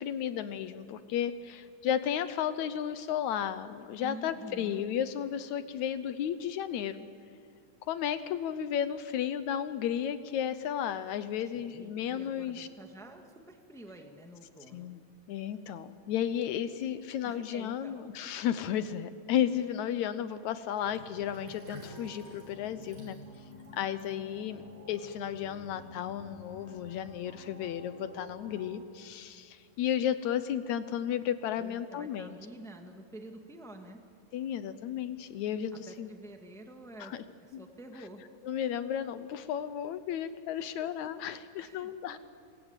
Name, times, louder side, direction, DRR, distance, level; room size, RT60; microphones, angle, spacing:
voice 1, 0.0-7.0 7.9-12.7 14.7-15.0 15.3-23.2 23.7-24.6 24.9-32.4 34.3-36.1 37.0-37.2 37.5-37.6 38.4-42.2, left 9 dB, 75° left, 12 dB, 1.8 m, -33 dB
voice 2, 4.0-4.8 11.5-14.9 17.2-18.1 31.5-34.0 35.9-37.1 37.4-38.2 40.5-41.1 41.6-42.2, right 1 dB, ahead, 4 dB, 0.7 m, -49 dB
Sink (filling or washing), 20.8-25.5, equal, 65° right, 7.3 m, -52 dB
sound 1, 20.9-28.7, left 2 dB, 35° right, 8.1 m, -51 dB
28.5 x 22.5 x 9.0 m, 2.3 s
omnidirectional pair, 4.1 m